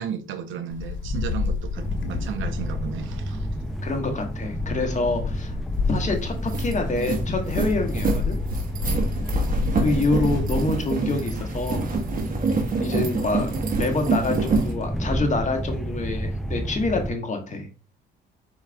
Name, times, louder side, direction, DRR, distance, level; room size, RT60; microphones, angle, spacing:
voice 1, 0.0-3.5, right 7 dB, 75° right, 0.7 m, -34 dB
Wind, 0.7-10.7, left 4 dB, 70° left, 0.8 m, -30 dB
sound 1, 1.7-17.1, right 1 dB, ahead, 0.5 m, -32 dB
voice 2, 3.8-5.6 5.9-8.4 9.8-11.9 12.8-17.7, left 2 dB, 35° left, 1.3 m, -26 dB
sound 2, 5.9-6.0 6.3-14.7, right 3 dB, 45° right, 1.3 m, -26 dB
4.6 x 4.5 x 2.3 m
cardioid pair, 90°, 20 cm